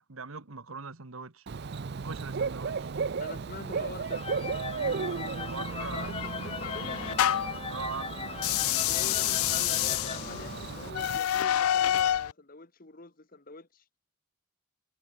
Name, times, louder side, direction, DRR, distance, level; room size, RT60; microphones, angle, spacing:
voice 1, 0.0-1.5 1.9-2.9 5.1-6.1 7.7-8.3, right 4 dB, 75° right, 1.5 m, -41 dB
Bird / Cricket, 1.5-11.2, right 5 dB, 50° right, 0.5 m, -35 dB
voice 2, 3.2-4.3 5.9-7.0 8.8-13.8, left 3 dB, 40° left, 1.5 m, -45 dB
sound 1, 4.0-11.0, left 5 dB, 25° left, 0.9 m, -40 dB
sound 2, 5.8-7.6 8.3-12.3, left 12 dB, 80° left, 0.3 m, -28 dB
head